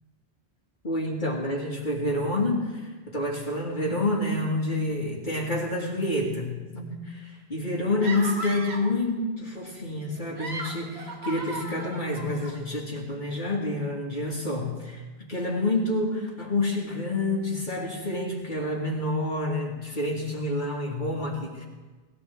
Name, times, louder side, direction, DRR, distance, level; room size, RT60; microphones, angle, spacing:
voice 1, 0.8-21.6, left 2 dB, 50° left, -3 dB, 2.1 m, -28 dB
sound 1, 8.0-9.0 10.2-12.6, right 2 dB, 75° right, 1.8 m, -37 dB
19.0 x 15.5 x 3.5 m, 1.3 s
omnidirectional pair, 1.1 m